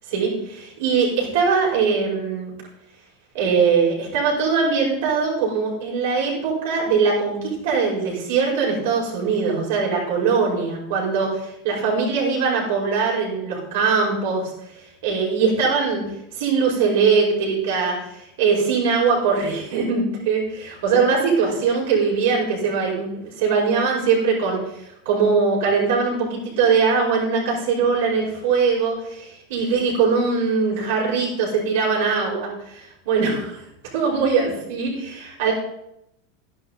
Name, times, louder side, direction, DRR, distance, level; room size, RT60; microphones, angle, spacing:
voice 1, 0.1-2.5 3.3-16.1 16.4-33.6 33.9-35.5, right 5 dB, 70° right, -2 dB, 5.1 m, -21 dB
12.5 x 11.0 x 4.1 m, 0.83 s
supercardioid pair, 150°, 0 cm